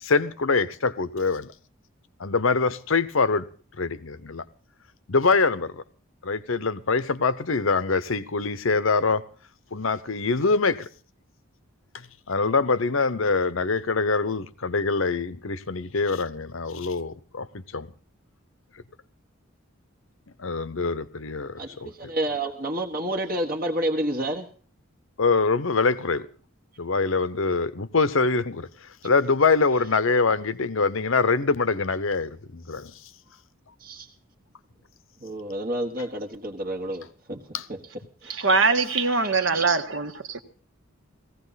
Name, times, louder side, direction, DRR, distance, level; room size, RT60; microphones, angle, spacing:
voice 1, 0.0-1.5 2.2-3.5 3.8-4.4 5.1-5.8 6.2-9.2 9.7-10.9 12.3-17.9 20.4-21.9 25.2-26.3 26.8-33.0 37.5-37.7, left 4 dB, 70° left, 0.8 m, -24 dB
voice 2, 21.6-24.5 33.8-34.1 35.2-37.4 37.7-37.8 38.2-38.5 39.2-39.7, right 1 dB, 40° right, 1.3 m, -30 dB
voice 3, 38.2-40.4, right 4 dB, 60° right, 1.5 m, -23 dB
18.5 x 15.5 x 4.1 m
head